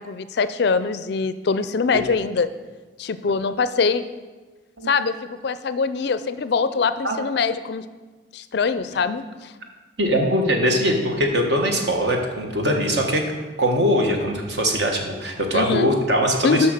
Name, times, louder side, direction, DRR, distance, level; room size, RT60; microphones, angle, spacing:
voice 1, 0.1-2.5 3.0-4.0 4.9-7.9 8.3-9.5 15.5-15.9 16.4-16.7, left 4 dB, 55° left, 12 dB, 0.4 m, -23 dB
voice 2, 10.0-13.2 13.6-16.7, equal, 55° right, 2 dB, 1.4 m, -21 dB
7.8 x 5.7 x 6.5 m, 1.3 s
head